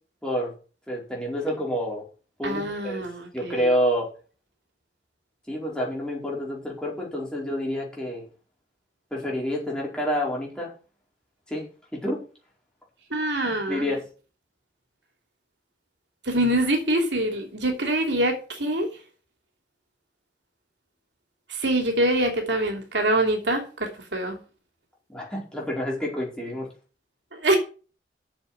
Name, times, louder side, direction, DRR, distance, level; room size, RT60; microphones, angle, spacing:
voice 1, 0.2-0.5 0.9-2.0 2.4-3.1 3.3-4.1 5.5-8.2 9.1-10.7 11.5-11.6 11.9-12.2 13.4-14.0 25.1-26.7, equal, 5° left, 4.7 m, -28 dB
voice 2, 2.4-3.6 13.1-13.9 16.3-18.9 21.5-24.4 27.3-27.6, right 1 dB, 90° right, 2.9 m, -25 dB
7.3 x 7.3 x 7.9 m
head